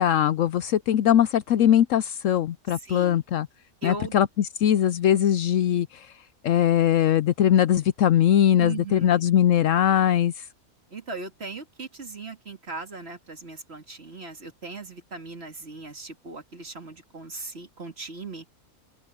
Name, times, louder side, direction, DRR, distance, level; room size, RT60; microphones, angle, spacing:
voice 1, 0.0-3.5 3.8-5.9 6.4-10.3, left 10 dB, 70° left, 0.9 m, -21 dB
voice 2, 2.7-3.2 3.8-4.2 8.6-9.2 10.9-18.4, right 3 dB, 45° right, 2.7 m, -38 dB
open air
omnidirectional pair, 1.5 m